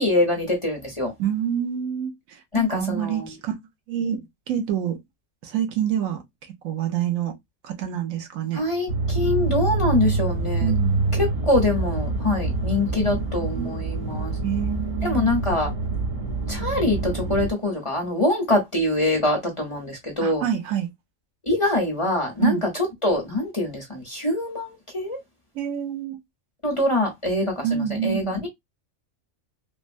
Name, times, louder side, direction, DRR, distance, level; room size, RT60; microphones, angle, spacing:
voice 1, 0.0-1.1 2.5-3.3 8.5-10.7 11.1-14.3 15.0-15.7 16.5-20.4 21.5-22.7 23.0-25.2 26.6-28.5, left 2 dB, 25° left, 0.9 m, -24 dB
voice 2, 1.2-2.1 2.5-3.5 3.9-5.0 5.4-6.2 6.6-7.4 7.6-8.6 10.6-11.1 12.9-13.2 13.5-13.7 14.4-15.2 20.2-20.9 22.4-22.6 25.5-26.2 27.6-28.4, right 9 dB, 85° right, 1.2 m, -27 dB
sound 1, 8.9-17.5, right 3 dB, 30° right, 0.8 m, -26 dB
3.3 x 2.2 x 2.5 m
omnidirectional pair, 1.4 m